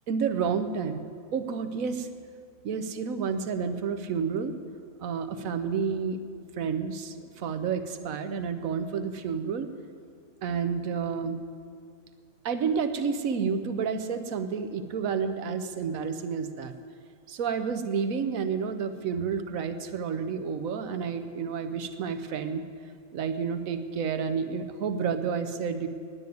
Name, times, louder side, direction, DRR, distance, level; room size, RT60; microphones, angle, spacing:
voice 1, 0.1-1.0 1.3-2.1 2.6-4.5 5.0-6.2 6.6-9.7 10.4-11.4 12.4-16.7 17.3-22.6 23.1-25.9, right 6 dB, 80° right, 9 dB, 1.2 m, -30 dB
9.5 x 9.3 x 9.3 m, 2.2 s
omnidirectional pair, 1.4 m